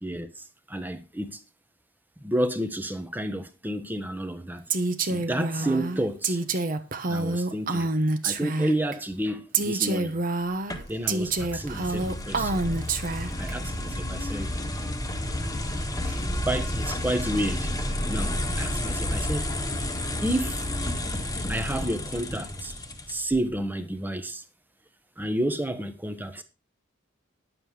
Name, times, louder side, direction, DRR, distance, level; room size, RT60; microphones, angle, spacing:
voice 1, 0.0-1.4 2.2-4.6 5.1-6.4 7.1-7.9 8.2-10.2 10.9-12.6 13.4-14.5 16.0-19.5 20.2-20.7 21.5-22.7 23.1-24.4 25.2-26.4, right 1 dB, 10° right, 1.1 m, -30 dB
Female speech woman speaking, 4.7-8.9 9.5-13.5, right 3 dB, 45° right, 1.0 m, -27 dB
sound 1, 10.7-23.4, left 1 dB, 15° left, 1.6 m, -31 dB
11.0 x 7.6 x 4.9 m
head